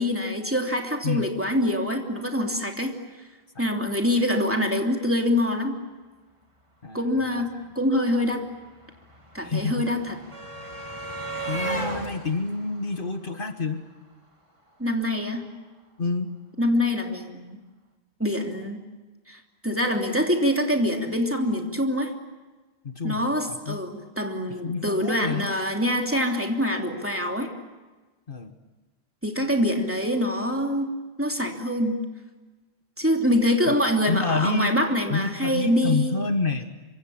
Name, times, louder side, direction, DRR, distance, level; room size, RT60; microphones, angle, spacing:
voice 1, 0.0-2.9 3.6-5.8 6.9-8.4 9.3-10.1 14.8-15.4 16.6-17.6 18.2-18.8 19.3-22.1 23.0-27.5 29.2-30.9 31.2-32.0 33.0-36.1, left 1 dB, 10° right, 2 dB, 3.0 m, -25 dB
voice 2, 6.8-7.3 9.4-9.9 11.5-13.9 16.0-16.3 22.8-23.2 23.5-23.8 24.6-25.5 28.3-28.5 33.7-33.8 34.1-34.7 35.1-36.7, left 4 dB, 55° left, 7 dB, 1.6 m, -28 dB
sound 1, 7.5-7.6 7.8-14.0 15.2-15.3 15.6-15.7, right 2 dB, 30° right, 2.9 m, -36 dB
26.5 x 25.0 x 8.6 m, 1.3 s
omnidirectional pair, 1.1 m